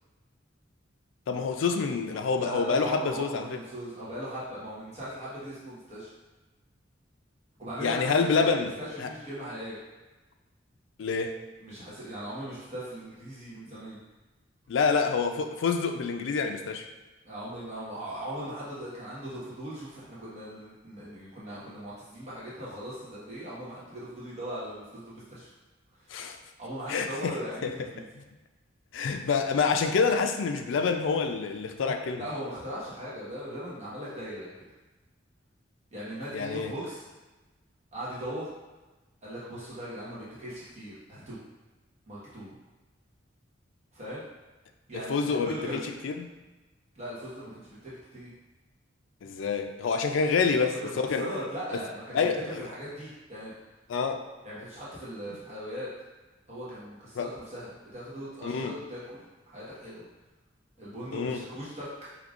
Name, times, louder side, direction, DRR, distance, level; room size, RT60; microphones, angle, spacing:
voice 1, 1.3-3.5 7.8-8.7 9.0-9.1 11.0-11.4 14.7-16.9 26.1-26.4 26.9-27.4 27.6-27.7 28.9-32.3 36.3-36.7 44.9-46.3 49.2-50.7 51.0-51.3 52.1-52.6 53.9-54.2 57.2-57.3 58.4-58.7 61.1-61.4, left 5 dB, 70° left, 6 dB, 0.4 m, -27 dB
voice 2, 2.3-6.1 7.6-9.8 11.6-14.0 17.2-25.5 26.6-28.1 32.2-34.5 35.9-37.0 37.9-38.5 39.2-41.4 42.1-42.5 43.9-44.2 44.9-45.8 46.9-48.3 50.2-53.5 54.4-55.9 56.5-59.0 59.5-60.0 60.8-62.1, equal, 35° right, -9 dB, 1.2 m, -39 dB
5.1 x 2.9 x 2.4 m, 1.2 s
head